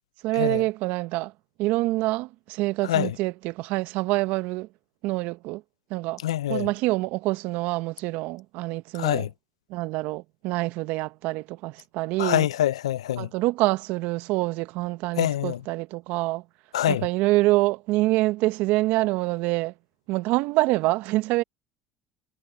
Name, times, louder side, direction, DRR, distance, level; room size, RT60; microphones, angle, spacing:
voice 1, 0.2-1.3 1.6-4.7 5.0-5.6 5.9-6.2 6.5-9.3 9.7-12.5 13.2-16.4 16.9-19.7 20.1-21.4, right 20 dB, 70° right, 1.4 m, -26 dB
voice 2, 6.2-6.7 9.0-9.3 12.2-13.3 15.2-15.6 16.7-17.0, left 12 dB, 90° left, 0.6 m, -25 dB
hypercardioid pair, 70°, 3 cm